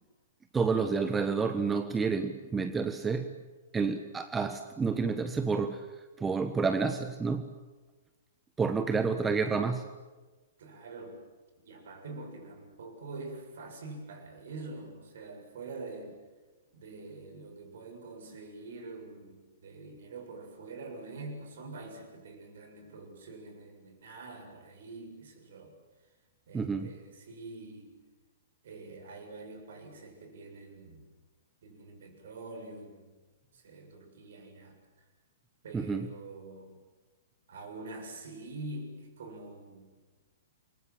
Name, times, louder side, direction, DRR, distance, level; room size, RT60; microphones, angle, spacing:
voice 1, 0.5-3.3 3.7-5.9 6.2-7.5 8.6-9.9 26.5-26.9 35.7-36.1, right 5 dB, 10° right, 8 dB, 1.4 m, -29 dB
voice 2, 10.6-11.2 11.6-16.2 16.7-25.7 26.5-28.0 28.6-31.1 31.6-33.1 33.5-34.8 35.6-36.8 37.5-39.9, right 3 dB, 55° right, 5 dB, 7.4 m, -45 dB
28.5 x 24.0 x 7.7 m, 1.3 s
figure-of-eight pair, 110°, 0 cm